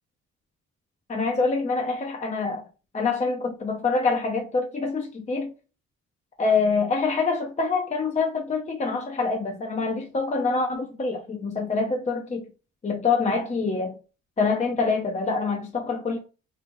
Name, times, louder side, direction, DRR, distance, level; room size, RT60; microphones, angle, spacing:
voice 1, 1.1-2.6 2.9-5.5 6.4-12.5 12.8-14.0 14.4-16.2, left 4 dB, 25° left, 0.6 m, -25 dB
3.2 x 2.4 x 3.5 m
cardioid pair, 90°, 30 cm